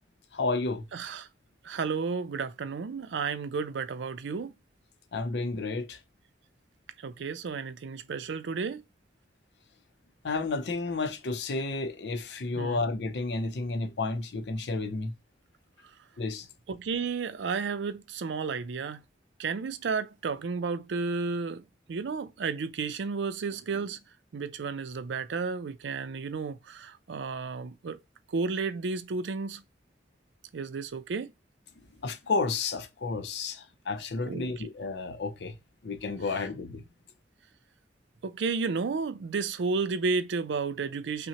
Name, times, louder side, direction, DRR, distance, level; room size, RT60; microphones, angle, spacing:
voice 1, 0.3-0.8 5.1-6.0 10.2-15.1 16.2-16.5 32.0-35.5 35.8-36.8, left 3 dB, 70° left, 0.5 m, -31 dB
voice 2, 0.9-1.3 1.6-4.5 7.0-8.8 12.5-12.8 16.7-19.0 19.4-24.0 24.3-28.0 28.3-29.6 30.5-31.3 34.2-34.7 36.3-36.4 38.2-41.3, right 4 dB, 85° right, 0.4 m, -32 dB
5.7 x 2.1 x 2.8 m
head